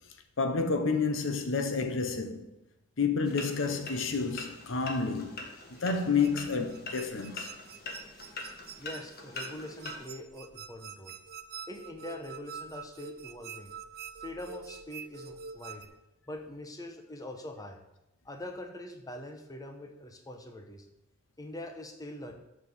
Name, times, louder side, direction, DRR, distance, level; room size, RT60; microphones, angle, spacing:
voice 1, 0.4-2.5 3.0-5.5 5.8-7.5, left 4 dB, 65° left, 1.0 m, -29 dB
sound 1, 3.2-10.1, left 3 dB, 50° left, 1.7 m, -43 dB
sound 2, 5.7-15.9, right 6 dB, 50° right, 0.7 m, -46 dB
voice 2, 8.8-11.2 11.7-13.7 14.2-15.9 16.3-17.8 18.2-20.9 21.4-22.4, left 1 dB, 20° left, 1.0 m, -43 dB
7.4 x 6.1 x 6.9 m
head